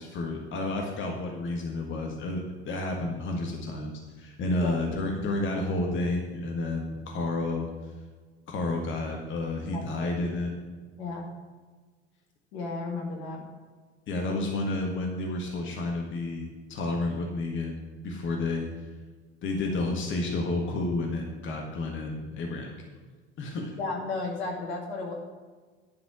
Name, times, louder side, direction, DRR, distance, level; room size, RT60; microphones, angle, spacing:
voice 1, 0.0-7.7 8.5-10.5 14.1-18.7 19.4-22.7 23.4-23.7, left 2 dB, 35° left, 1 dB, 1.7 m, -31 dB
voice 2, 9.7-10.1 11.0-11.3 12.5-13.4 23.8-25.1, left 3 dB, 65° left, 0 dB, 2.4 m, -34 dB
11.0 x 6.0 x 6.2 m, 1.5 s
figure-of-eight pair, 70°, 35 cm